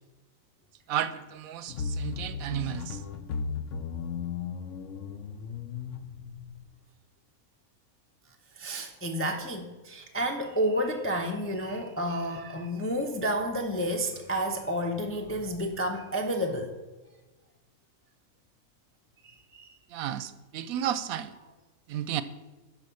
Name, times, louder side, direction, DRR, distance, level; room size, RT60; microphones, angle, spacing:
voice 1, 0.9-3.0 19.9-21.3 21.9-22.2, right 10 dB, 75° right, 14 dB, 1.0 m, -32 dB
sound 1, 1.7-6.6, left 5 dB, 65° left, 1.0 m, -36 dB
voice 2, 8.6-16.7 19.2-19.8, equal, 20° left, 3 dB, 0.4 m, -30 dB
11.5 x 4.2 x 6.9 m, 1.2 s
omnidirectional pair, 1.5 m